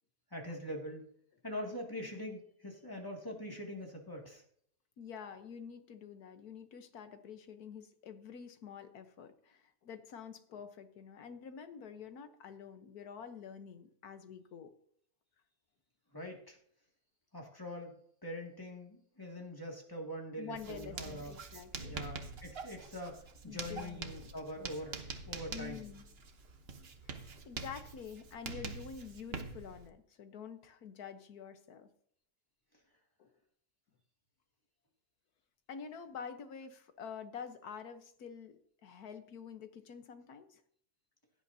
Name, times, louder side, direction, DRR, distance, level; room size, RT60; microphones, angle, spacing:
voice 1, 0.3-1.1 1.4-4.4 16.1-16.6 17.3-17.9 18.2-21.3 21.9-25.8, equal, 15° left, 0 dB, 2.3 m, -43 dB
voice 2, 5.0-14.7 20.4-22.0 23.5-24.3 25.5-26.0 27.0-31.9 33.2-33.3 35.7-40.6, left 7 dB, 85° left, 8 dB, 1.6 m, -48 dB
Writing, 20.6-29.9, right 4 dB, 45° right, 1.2 m, -45 dB
16.5 x 10.5 x 2.8 m, 0.65 s
omnidirectional pair, 1.6 m